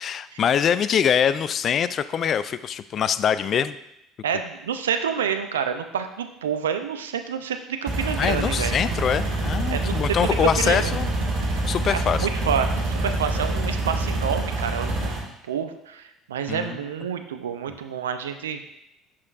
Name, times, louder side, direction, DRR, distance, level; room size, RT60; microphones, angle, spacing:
voice 1, 0.0-3.8 8.2-11.1 11.7-12.3 16.5-16.8, left 8 dB, 45° left, 14 dB, 0.3 m, -23 dB
voice 2, 4.2-8.8 9.7-10.9 11.9-15.1 15.5-18.6, right 7 dB, 80° right, 8 dB, 0.4 m, -28 dB
sound 1, 7.9-15.2, right 2 dB, 55° right, 2.0 m, -26 dB
7.2 x 6.3 x 2.4 m, 0.82 s
figure-of-eight pair, 60°, 0 cm